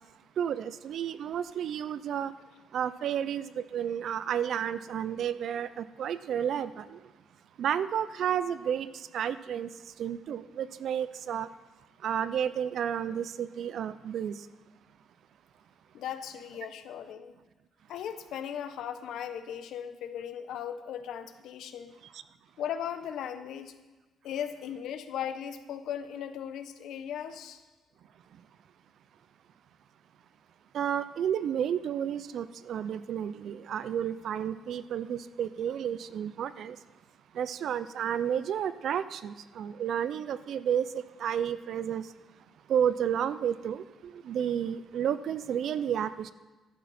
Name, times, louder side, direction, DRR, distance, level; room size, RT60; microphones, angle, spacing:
voice 1, 0.4-2.3 2.7-7.0 7.6-8.9 9.1-9.7 10.0-11.5 12.0-14.3 30.7-36.8 37.3-42.0 42.7-46.3, right 9 dB, 60° right, 15 dB, 0.5 m, -31 dB
voice 2, 15.9-17.3 17.9-21.9 22.6-23.7 24.2-27.6, left 9 dB, 75° left, 10 dB, 0.9 m, -37 dB
14.0 x 12.0 x 4.3 m, 1.2 s
cardioid pair, 140°, 0 cm